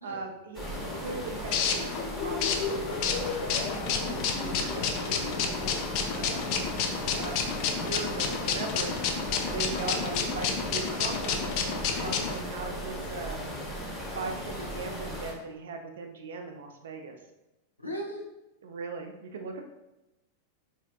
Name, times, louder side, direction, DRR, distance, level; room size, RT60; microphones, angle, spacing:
voice 1, 0.0-3.7 4.1-7.4 7.7-9.0 9.4-13.4 14.1-17.2 18.6-19.6, right 4 dB, 60° right, 4 dB, 0.5 m, -39 dB
sound 1, 0.5-15.3, equal, 5° left, 0.9 m, -37 dB
sound 2, 0.8-12.3, left 6 dB, 45° left, 0.4 m, -30 dB
voice 2, 9.7-10.3 17.8-18.2, equal, 85° left, -2 dB, 0.7 m, -38 dB
4.2 x 2.7 x 2.2 m, 0.97 s
figure-of-eight pair, 90°, 0 cm